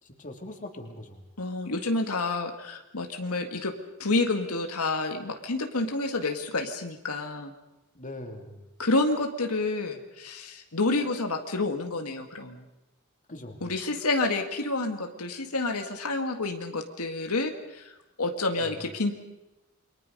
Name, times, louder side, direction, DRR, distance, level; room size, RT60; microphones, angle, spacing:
voice 1, 0.0-1.2 7.9-8.6 13.3-13.7 18.6-18.9, left 1 dB, 35° left, 3 dB, 2.8 m, -41 dB
voice 2, 1.4-3.7 4.0-7.5 8.8-12.6 13.6-19.1, left 2 dB, 80° left, 4 dB, 2.0 m, -29 dB
28.5 x 24.0 x 5.4 m, 0.96 s
head